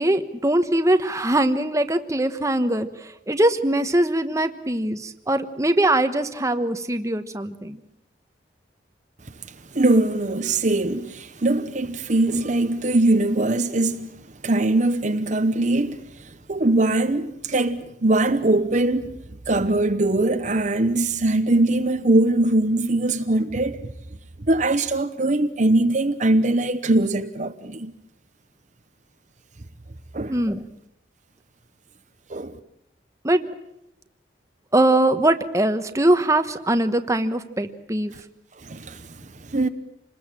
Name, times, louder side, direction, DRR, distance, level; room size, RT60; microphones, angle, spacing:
voice 1, 0.0-7.8 30.3-30.6 33.2-33.5 34.7-38.2, right 1 dB, 15° right, 1.2 m, -22 dB
voice 2, 9.7-14.1 14.4-19.1 19.5-23.9 24.5-27.9 30.1-30.4 32.3-32.6 38.6-39.7, right 2 dB, 40° right, 1.0 m, -21 dB
27.5 x 20.5 x 7.6 m
head